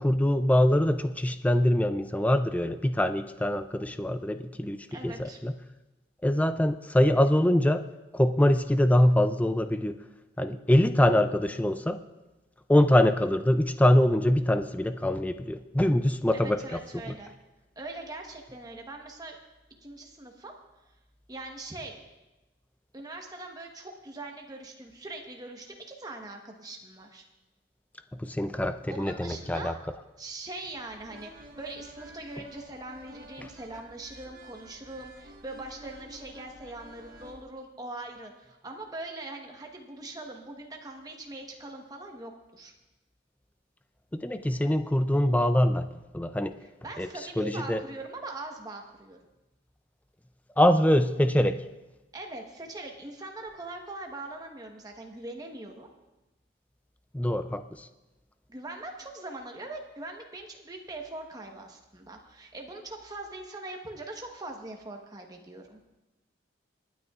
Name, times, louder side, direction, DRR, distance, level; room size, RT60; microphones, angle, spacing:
voice 1, 0.0-5.5 6.2-7.8 8.1-10.0 10.4-12.0 12.7-16.8 17.1-17.2 28.1-29.7 44.1-45.9 46.1-46.5 47.0-47.1 47.4-47.8 50.6-51.6 57.1-57.9, left 1 dB, 10° left, 10 dB, 0.4 m, -24 dB
voice 2, 4.9-5.4 16.3-17.3 17.8-19.4 19.8-20.5 21.3-22.0 22.9-27.3 28.9-29.7 30.2-42.7 46.8-49.2 52.1-55.9 58.5-65.8, right 2 dB, 20° right, 2 dB, 1.1 m, -41 dB
sound 1, 30.8-37.4, right 1 dB, 50° right, 1.3 m, -50 dB
27.5 x 9.3 x 2.4 m, 1.1 s
head